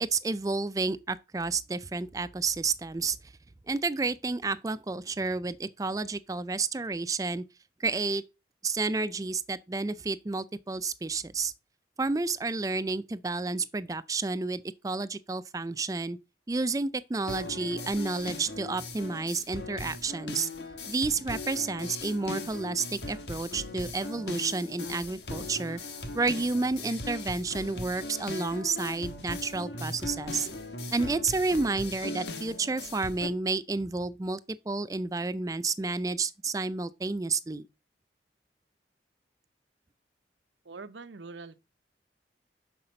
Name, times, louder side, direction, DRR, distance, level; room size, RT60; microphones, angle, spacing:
voice 1, 0.0-3.2 3.7-7.4 7.8-8.2 8.6-11.5 12.0-16.2 16.5-20.5 20.9-25.8 26.1-30.5 30.9-34.4 34.7-37.7, right 3 dB, 20° right, 0.3 m, -30 dB
sound 1, 17.3-33.3, left 2 dB, 70° left, 1.3 m, -39 dB
voice 2, 40.6-41.6, right 4 dB, 85° right, 0.7 m, -44 dB
6.6 x 5.7 x 5.2 m
head